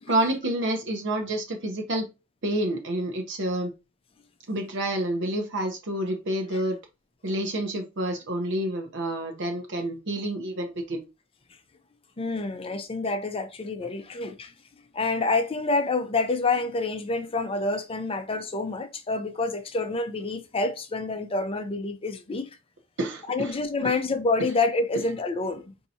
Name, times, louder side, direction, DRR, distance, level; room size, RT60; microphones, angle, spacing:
voice 1, 0.1-2.1 2.4-3.7 4.5-6.8 7.2-11.0 23.0-23.5 23.8-24.0, right 1 dB, 55° right, 0.7 m, -28 dB
voice 2, 12.2-14.5 14.9-22.5 23.3-25.7, left 3 dB, 25° left, 0.5 m, -27 dB
4.5 x 2.7 x 2.7 m
head